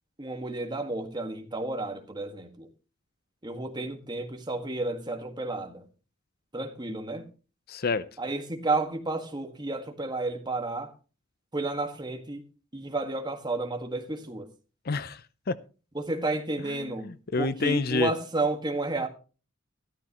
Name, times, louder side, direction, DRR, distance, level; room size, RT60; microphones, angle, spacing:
voice 1, 0.2-2.7 3.4-5.8 6.5-7.2 8.2-10.9 11.5-12.4 12.7-14.5 16.0-17.1 17.4-19.1, right 2 dB, 20° right, 1.7 m, -31 dB
voice 2, 7.7-8.0 14.9-15.2 15.5-15.6 16.7-18.1, left 4 dB, 45° left, 0.6 m, -28 dB
13.5 x 13.5 x 3.0 m
head